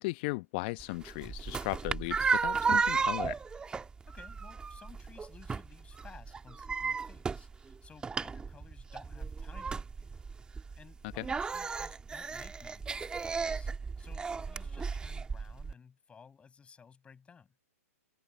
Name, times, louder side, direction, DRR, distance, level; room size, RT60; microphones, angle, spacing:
voice 1, 0.0-3.4 11.2-11.3, left 24 dB, 40° left, 0.9 m, -36 dB
sound 1, 0.8-15.7, right 5 dB, 10° right, 1.7 m, -34 dB
voice 2, 4.1-10.2 10.8-17.5, left 6 dB, 15° left, 7.3 m, -57 dB
hypercardioid pair, 125°, 8 cm